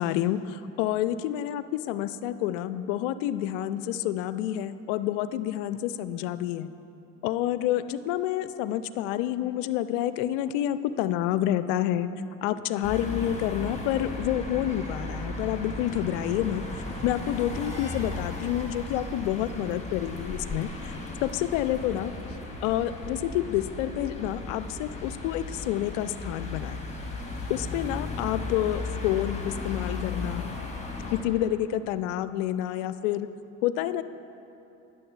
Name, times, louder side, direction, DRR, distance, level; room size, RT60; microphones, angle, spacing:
voice 1, 0.0-6.7 7.2-12.1 12.4-20.9 21.2-22.1 22.6-26.8 27.5-30.6 31.1-33.3 33.6-34.0, left 12 dB, 65° left, 14 dB, 0.5 m, -28 dB
sound 1, 12.8-31.2, left 3 dB, 15° left, 1.9 m, -36 dB
18.5 x 6.8 x 3.3 m, 2.9 s
figure-of-eight pair, 50°, 40 cm